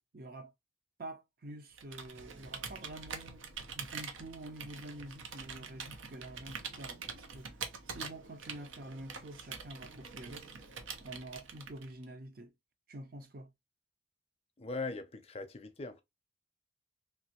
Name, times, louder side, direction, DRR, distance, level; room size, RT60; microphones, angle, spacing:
voice 1, 0.1-0.5 1.0-3.4 3.7-7.5 7.9-10.5 11.0-12.5 12.9-13.5, right 1 dB, 50° right, 0.6 m, -47 dB
Computer keyboard, 1.7-12.0, right 5 dB, 85° right, 0.7 m, -45 dB
voice 2, 14.6-16.0, left 3 dB, 30° left, 0.5 m, -40 dB
3.2 x 2.5 x 2.8 m
head